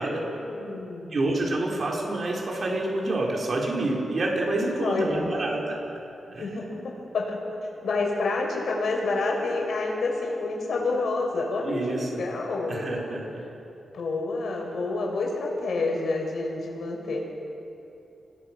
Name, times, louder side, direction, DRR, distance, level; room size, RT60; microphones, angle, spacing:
voice 1, 0.1-1.2 4.8-5.5 6.4-7.4 7.8-13.1 13.9-17.3, left 3 dB, 70° left, 0 dB, 5.6 m, -28 dB
voice 2, 1.1-5.8 6.3-6.4 11.6-12.2 12.7-13.4, right 2 dB, 45° right, -2 dB, 4.9 m, -28 dB
29.0 x 20.0 x 6.3 m, 2.9 s
wide cardioid pair, 130°, 0 cm